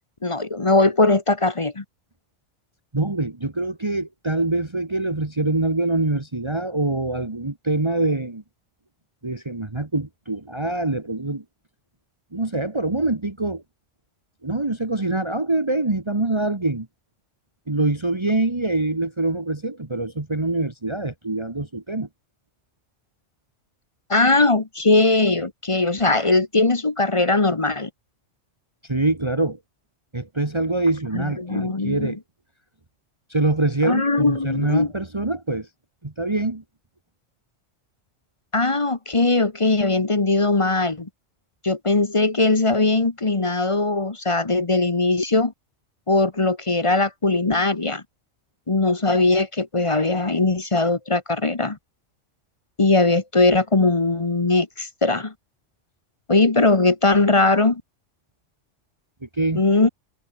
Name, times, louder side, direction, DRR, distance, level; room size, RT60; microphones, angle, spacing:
voice 1, 0.2-1.8 24.1-27.9 31.1-32.1 33.8-34.9 38.5-41.1 41.6-45.5 46.1-48.0 48.7-51.8 52.8-55.3 56.3-57.8 59.5-59.9, left 2 dB, 25° left, 1.1 m, -20 dB
voice 2, 2.9-8.4 9.2-11.4 12.3-13.6 14.4-16.9 17.7-22.1 28.9-29.6 30.1-32.2 33.3-35.7 36.0-36.6 59.2-59.6, right 2 dB, 25° right, 1.7 m, -24 dB
omnidirectional pair, 1.3 m